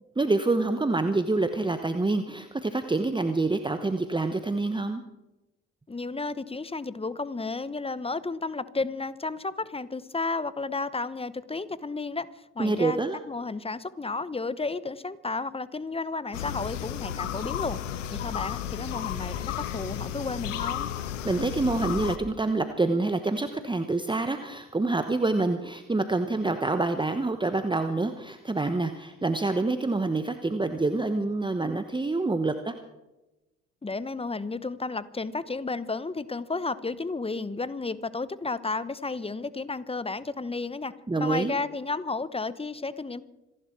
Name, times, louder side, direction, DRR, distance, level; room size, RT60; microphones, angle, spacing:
voice 1, 0.2-5.0 12.6-13.2 21.2-32.7 41.1-41.6, right 3 dB, 15° right, 8 dB, 1.1 m, -27 dB
voice 2, 5.9-13.0 13.3-17.8 18.1-20.9 33.8-43.2, left 3 dB, 15° left, 17 dB, 1.0 m, -32 dB
sound 1, 16.3-22.2, left 10 dB, 90° left, 1.0 m, -33 dB
27.0 x 11.5 x 4.6 m, 1.0 s
hypercardioid pair, 50°, 37 cm